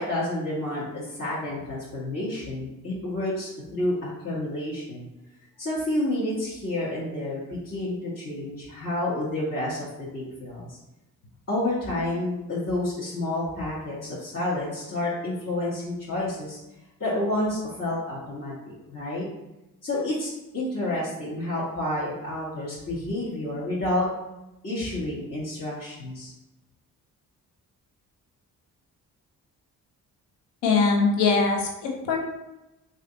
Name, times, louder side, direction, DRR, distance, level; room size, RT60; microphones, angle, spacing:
voice 1, 0.0-5.1 5.6-10.8 11.5-16.6 17.0-19.3 19.8-24.1 24.6-26.3, left 1 dB, 35° left, -10 dB, 1.5 m, -29 dB
voice 2, 30.6-32.2, left 4 dB, 85° left, 0 dB, 0.8 m, -22 dB
3.2 x 2.7 x 3.9 m, 0.96 s
hypercardioid pair, 45°, 40 cm